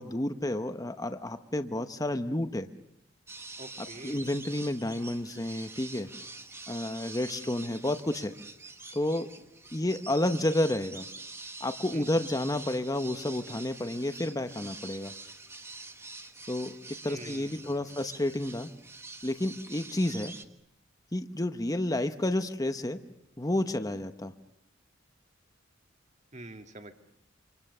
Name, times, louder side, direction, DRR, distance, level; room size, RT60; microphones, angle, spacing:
voice 1, 0.0-2.7 4.0-6.1 6.7-8.3 8.9-9.3 9.7-11.1 11.6-15.1 16.5-16.7 17.0-18.7 19.2-20.3 21.1-23.0 23.4-24.3, left 1 dB, 20° left, 8 dB, 0.9 m, -30 dB
sound 1, 3.3-20.4, right 3 dB, 15° right, 1.4 m, -46 dB
voice 2, 3.6-4.3 11.9-12.3 17.1-18.2 26.3-26.9, right 2 dB, 35° right, 7 dB, 1.8 m, -47 dB
28.0 x 26.5 x 6.7 m, 0.78 s
head